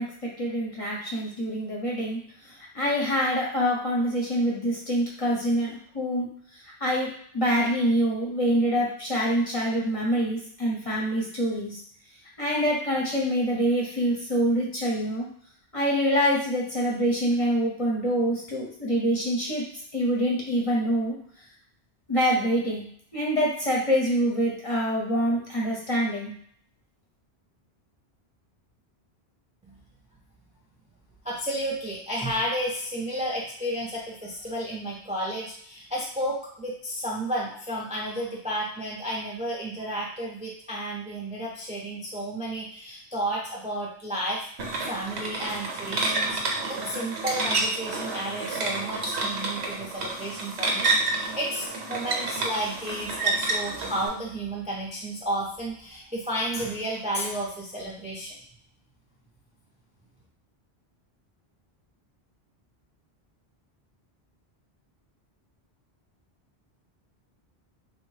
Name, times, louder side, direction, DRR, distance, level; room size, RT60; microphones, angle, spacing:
voice 1, 0.0-2.2 2.4-6.3 6.8-11.8 12.4-15.3 15.7-19.6 19.9-21.2 22.1-22.9 23.1-26.3, equal, 35° left, -4 dB, 0.7 m, -25 dB
voice 2, 31.2-44.5 44.8-58.4, right 1 dB, 10° right, -4 dB, 0.4 m, -32 dB
sound 1, 44.6-54.1, right 3 dB, 80° right, 1.0 m, -29 dB
3.4 x 2.1 x 3.2 m, 0.63 s
omnidirectional pair, 1.1 m